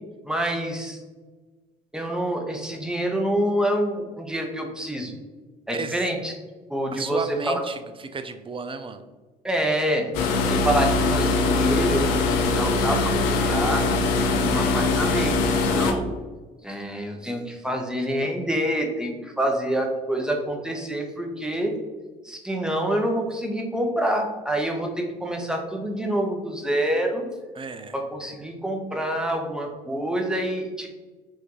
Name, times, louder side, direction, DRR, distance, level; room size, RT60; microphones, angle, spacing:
voice 1, 0.2-1.0 1.9-5.1 5.7-6.3 6.7-7.6 9.4-10.1 10.5-13.8 14.3-16.0 16.6-21.8 22.2-27.2 27.9-30.9, right 1 dB, 5° right, 2 dB, 1.0 m, -27 dB
voice 2, 5.7-6.1 6.9-9.0 27.5-28.0, right 4 dB, 25° right, 9 dB, 0.5 m, -33 dB
sound 1, 10.1-15.9, left 3 dB, 80° left, 0.6 m, -22 dB
5.7 x 2.6 x 3.0 m, 1.3 s
hypercardioid pair, 65°, 21 cm